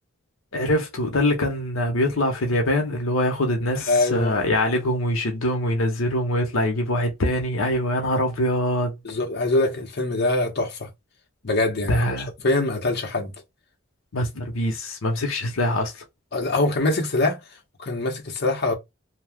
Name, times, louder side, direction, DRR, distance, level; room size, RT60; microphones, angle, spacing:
voice 1, 0.5-8.9 11.9-12.3 14.1-16.0, left 1 dB, 80° left, 0.9 m, -23 dB
voice 2, 3.7-4.5 9.0-10.9 11.4-11.9 12.4-13.3 16.3-17.4 17.8-18.7, left 2 dB, 55° left, 0.9 m, -23 dB
2.8 x 2.3 x 3.5 m
head